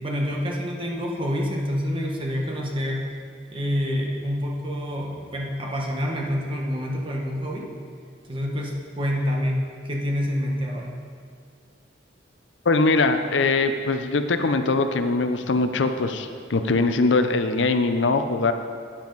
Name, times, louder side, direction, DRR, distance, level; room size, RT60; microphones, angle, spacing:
voice 1, 0.0-3.1 3.5-7.7 8.3-11.0, equal, 30° right, -1 dB, 1.3 m, -27 dB
voice 2, 12.7-18.5, left 3 dB, 85° left, 8 dB, 0.6 m, -22 dB
12.0 x 9.0 x 4.0 m, 2.2 s
head